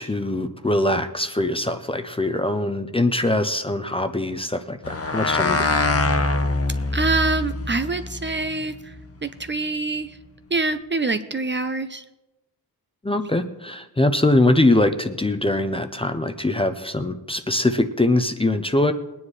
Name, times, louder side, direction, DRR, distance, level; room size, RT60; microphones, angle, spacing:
voice 1, 0.0-4.8 5.0-5.6 13.0-18.9, left 1 dB, 15° left, 8 dB, 0.6 m, -22 dB
sound 1, 4.8-9.5, left 2 dB, 35° left, 0.9 m, -24 dB
voice 2, 6.9-8.9 9.2-10.2 10.5-12.0, right 3 dB, 30° right, 10 dB, 0.5 m, -25 dB
21.0 x 9.8 x 3.2 m, 1.0 s
wide cardioid pair, 140°, 39 cm